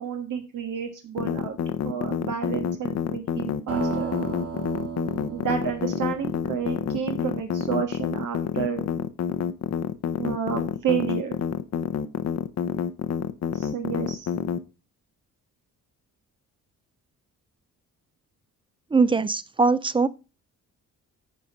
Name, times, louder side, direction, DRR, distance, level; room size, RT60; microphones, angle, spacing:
voice 1, 0.0-1.6 1.8-4.1 5.3-8.8 10.2-11.4 13.5-14.3, right 7 dB, 80° right, 1.4 m, -30 dB
sound 1, 1.2-14.6, left 8 dB, 55° left, 0.7 m, -28 dB
sound 2, 3.7-8.0, right 5 dB, 50° right, 2.0 m, -35 dB
voice 2, 18.9-20.1, right 4 dB, 15° right, 0.4 m, -21 dB
9.9 x 4.4 x 5.2 m
cardioid pair, 110°, 31 cm